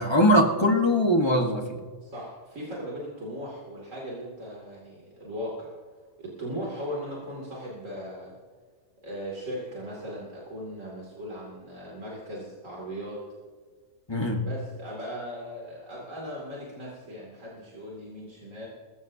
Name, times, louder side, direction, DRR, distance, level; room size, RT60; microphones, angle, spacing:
voice 1, 0.0-1.8 14.1-14.4, equal, 20° left, 2 dB, 1.3 m, -21 dB
voice 2, 2.0-5.7 6.2-8.4 9.0-13.2 14.4-18.7, equal, 65° right, -4 dB, 3.1 m, -38 dB
22.0 x 14.0 x 2.8 m, 1.6 s
omnidirectional pair, 1.4 m